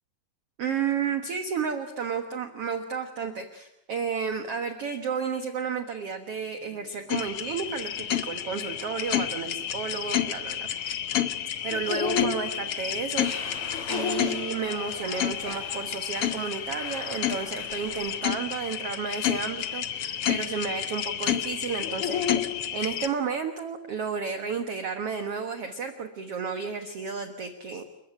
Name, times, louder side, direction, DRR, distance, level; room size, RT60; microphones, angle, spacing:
voice 1, 0.6-11.0 11.6-22.3 22.7-27.8, right 6 dB, 55° right, 8 dB, 1.8 m, -32 dB
sound 1, 6.3-18.8, left 2 dB, 20° left, 4.9 m, -52 dB
sound 2, 7.1-23.1, left 10 dB, 75° left, 1.3 m, -30 dB
sound 3, 13.1-18.2, left 3 dB, 45° left, 4.7 m, -41 dB
29.5 x 15.0 x 10.0 m, 0.87 s
omnidirectional pair, 4.3 m